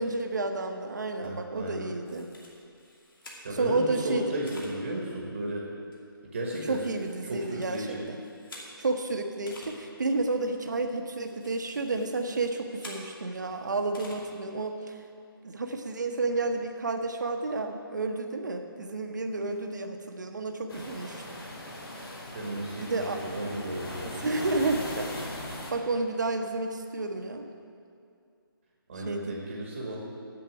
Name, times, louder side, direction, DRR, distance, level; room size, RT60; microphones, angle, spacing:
voice 1, 0.0-2.3 3.5-4.4 6.7-8.2 8.8-15.0 15.4-21.4 22.8-23.2 24.0-25.1 25.7-27.4 29.1-29.4, right 3 dB, 50° right, 5 dB, 0.9 m, -31 dB
voice 2, 1.2-1.9 3.4-5.7 6.2-6.8 7.2-8.0 22.3-24.5 28.9-30.0, right 1 dB, 25° right, -2 dB, 1.2 m, -34 dB
sound 1, 2.1-3.7 4.5-4.7 5.9-9.0 9.5-9.7 10.8-13.0 13.9-14.2, left 2 dB, 60° left, 2.4 m, -49 dB
sound 2, 20.7-25.7, left 1 dB, 85° left, 2.4 m, -39 dB
8.1 x 7.7 x 7.9 m, 2.4 s
hypercardioid pair, 175°, 13 cm